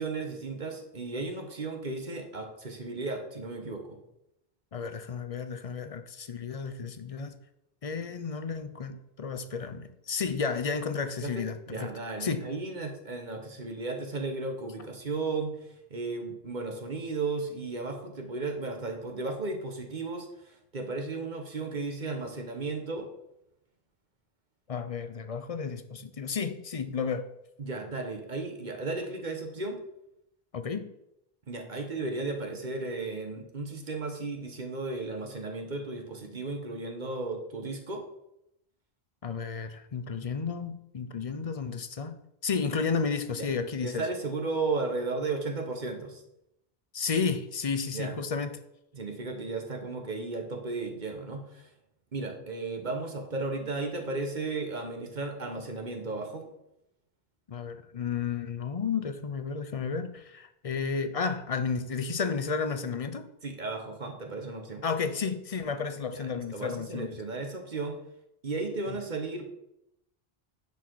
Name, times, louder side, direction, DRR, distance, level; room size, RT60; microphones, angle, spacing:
voice 1, 0.0-4.0 11.2-23.1 27.6-29.8 31.5-38.0 43.8-46.2 47.9-48.2 48.9-51.7 52.1-56.5 63.4-64.8 66.1-68.0 68.4-69.5, right 3 dB, 50° right, 4 dB, 1.2 m, -35 dB
voice 2, 4.7-7.3 7.8-11.9 12.2-12.5 24.7-27.3 30.5-30.9 39.2-42.2 42.4-44.1 46.9-48.6 57.5-63.3 64.8-67.1, left 5 dB, 40° left, 10 dB, 0.6 m, -32 dB
9.5 x 4.4 x 4.6 m, 0.82 s
omnidirectional pair, 1.0 m